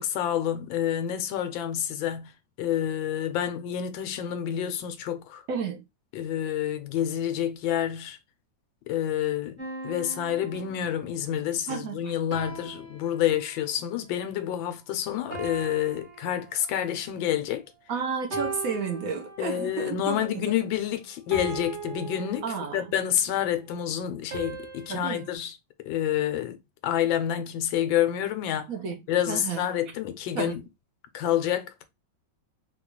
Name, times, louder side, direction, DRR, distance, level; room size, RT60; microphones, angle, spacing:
voice 1, 0.0-2.3 2.6-5.4 6.1-8.2 8.9-17.7 19.4-22.5 22.7-25.6 25.8-26.6 26.8-28.7 29.1-30.6 31.1-31.8, left 10 dB, 90° left, 1.4 m, -28 dB
voice 2, 5.5-5.8 11.7-12.1 17.9-20.4 22.4-22.9 24.9-25.2 28.7-29.0 29.3-29.7 30.3-30.6, right 5 dB, 65° right, 0.9 m, -32 dB
sound 1, 9.6-11.2 12.3-13.8 15.3-17.0 18.3-19.8 21.3-23.0 24.3-25.3, right 3 dB, 30° right, 1.0 m, -39 dB
3.8 x 2.3 x 2.8 m
omnidirectional pair, 2.0 m